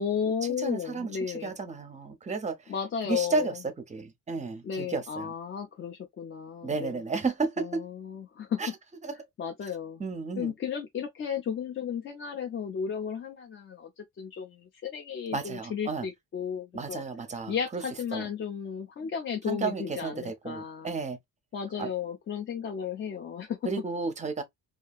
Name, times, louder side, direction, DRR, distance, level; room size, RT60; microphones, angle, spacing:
voice 1, 0.0-1.6 2.7-3.6 4.6-7.0 7.6-8.6 9.4-10.0 10.4-17.0 17.5-20.9 21.5-23.7, left 7 dB, 35° left, 0.4 m, -34 dB
voice 2, 0.6-2.6 3.1-3.5 3.9-5.3 6.6-7.8 8.6-8.7 9.0-9.1 10.0-10.5 15.3-16.1 16.7-17.8 18.1-18.3 19.5-21.2 21.8-21.9 23.6-24.4, right 4 dB, 20° right, 0.5 m, -32 dB
2.7 x 2.4 x 2.2 m
cardioid pair, 135°, 35 cm